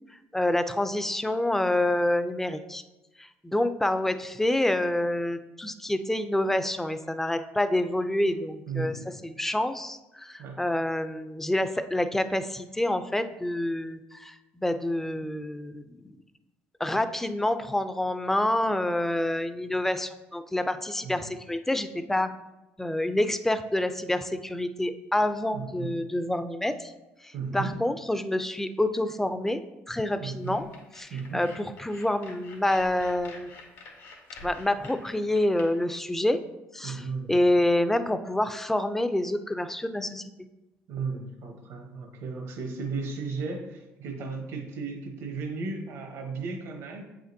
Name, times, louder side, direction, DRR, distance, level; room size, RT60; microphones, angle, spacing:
voice 1, 0.3-2.8 3.2-9.0 9.2-16.2 16.8-22.3 22.8-26.9 27.2-29.6 29.9-30.6 31.0-33.5 34.4-36.4 36.7-40.2, left 1 dB, 5° left, 10 dB, 0.4 m, -27 dB
voice 2, 8.7-9.1 10.4-10.6 21.0-21.3 25.5-26.0 27.3-27.7 30.2-30.6 31.1-31.4 36.8-37.4 40.9-47.0, right 4 dB, 75° right, 3 dB, 1.2 m, -35 dB
sound 1, 30.4-35.6, left 3 dB, 90° left, 1.4 m, -47 dB
7.8 x 5.0 x 2.6 m, 1.0 s
cardioid pair, 95°, 5 cm